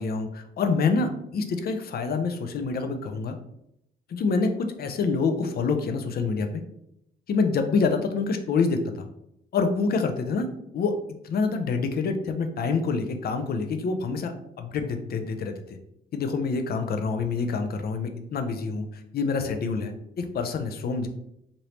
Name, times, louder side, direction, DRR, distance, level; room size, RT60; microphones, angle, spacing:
voice 1, 0.0-3.3 4.1-6.6 7.3-9.1 9.5-10.5 10.7-10.9 11.2-15.5 16.1-21.1, left 4 dB, 50° left, 7 dB, 0.5 m, -26 dB
3.2 x 2.6 x 2.9 m, 0.79 s
cardioid pair, 90°, 20 cm